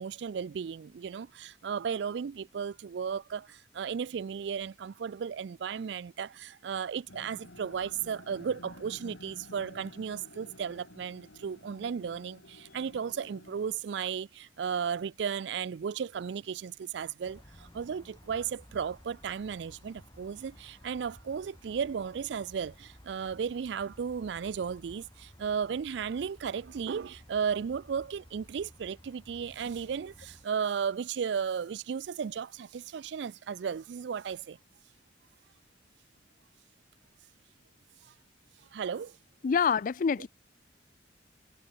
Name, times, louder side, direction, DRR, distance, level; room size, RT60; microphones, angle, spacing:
voice 1, 0.0-34.6 38.7-39.1, right 7 dB, 65° right, 0.4 m, -35 dB
sound 1, 7.1-13.8, left 1 dB, 85° left, 3.1 m, -52 dB
sound 2, 17.2-30.4, equal, 20° left, 4.9 m, -56 dB
voice 2, 39.4-40.3, left 6 dB, 45° left, 0.4 m, -26 dB
head